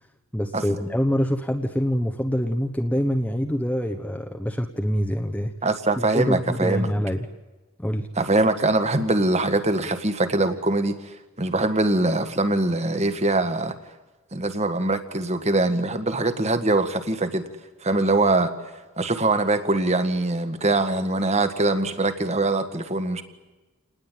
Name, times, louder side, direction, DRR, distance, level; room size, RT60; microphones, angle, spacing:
voice 1, 0.3-5.5 6.0-7.3 7.8-8.1, equal, 5° left, 3 dB, 1.1 m, -25 dB
voice 2, 5.6-6.9 8.2-13.7 14.3-17.4 17.8-18.5 19.0-23.2, right 2 dB, 30° right, 9 dB, 1.8 m, -23 dB
28.5 x 20.0 x 9.3 m, 1.2 s
head